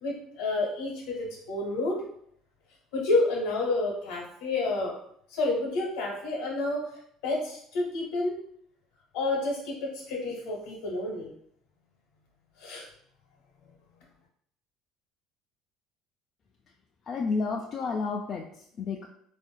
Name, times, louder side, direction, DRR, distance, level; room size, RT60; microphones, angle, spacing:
voice 1, 0.0-2.0 2.9-4.9 5.3-6.9 7.2-8.3 9.1-11.3 12.6-12.9, left 2 dB, 70° left, -2 dB, 1.0 m, -29 dB
voice 2, 17.1-19.1, left 4 dB, 45° left, 0 dB, 0.3 m, -31 dB
3.4 x 2.5 x 2.2 m, 0.68 s
hypercardioid pair, 65°, 0 cm